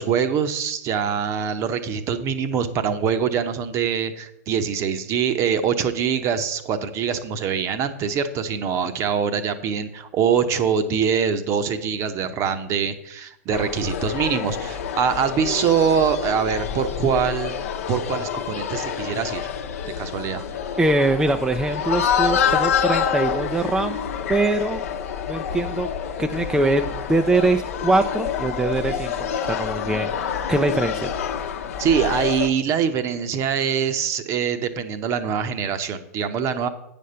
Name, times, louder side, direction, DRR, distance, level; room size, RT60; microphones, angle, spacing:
voice 1, 0.0-17.5 17.9-19.5 20.0-20.4 31.8-36.7, right 7 dB, 35° right, 10 dB, 0.9 m, -24 dB
sound 1, 13.5-32.5, left 8 dB, 65° left, 0.9 m, -27 dB
voice 2, 20.8-24.0 24.3-24.8 25.3-25.9 26.2-31.1, right 2 dB, 5° right, 6 dB, 0.4 m, -23 dB
9.2 x 5.3 x 5.6 m, 0.82 s
figure-of-eight pair, 100°, 8 cm